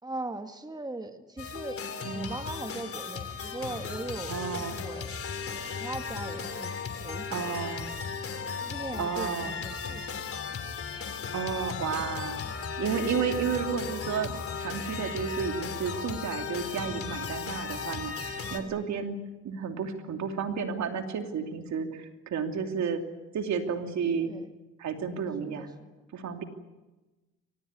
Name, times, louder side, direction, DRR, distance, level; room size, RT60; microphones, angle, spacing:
voice 1, 0.0-1.8 2.1-5.2 5.8-7.9 8.4-10.2 12.4-12.6 16.8-17.2 18.6-18.9 24.2-24.5 25.4-25.9, right 2 dB, 15° right, 7 dB, 1.8 m, -40 dB
sound 1, 1.4-18.6, left 5 dB, 50° left, 3.1 m, -36 dB
voice 2, 4.3-4.8 7.3-7.9 9.0-9.6 11.3-14.3 14.6-19.2 19.4-23.0 23.3-24.4 24.8-25.7 26.1-26.4, right 6 dB, 65° right, 6 dB, 2.8 m, -32 dB
23.5 x 19.5 x 9.7 m, 1.1 s
cardioid pair, 90°, 30 cm